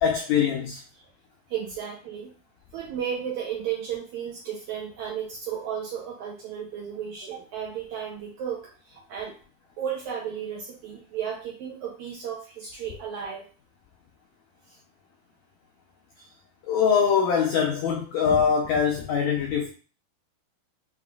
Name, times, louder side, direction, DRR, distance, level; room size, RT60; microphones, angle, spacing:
voice 1, 0.0-0.8 16.7-19.7, left 7 dB, 85° left, 2 dB, 1.6 m, -23 dB
voice 2, 1.5-2.3 2.7-9.3 9.8-13.5 14.7-14.8, right 8 dB, 75° right, -2 dB, 1.8 m, -34 dB
7.0 x 2.4 x 2.3 m, 0.37 s
omnidirectional pair, 3.9 m